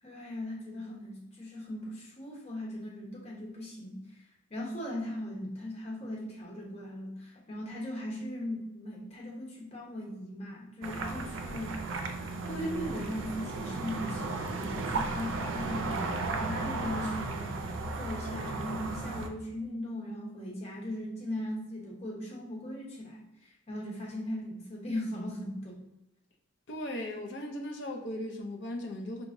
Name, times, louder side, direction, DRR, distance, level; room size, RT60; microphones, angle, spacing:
voice 1, 0.0-11.8 12.4-16.0 16.3-25.8, left 1 dB, 30° left, 1.1 m, -39 dB
sound 1, 10.8-19.3, right 3 dB, 70° right, 0.4 m, -35 dB
voice 2, 26.7-29.3, left 1 dB, 60° left, 0.6 m, -37 dB
4.7 x 3.0 x 2.6 m
head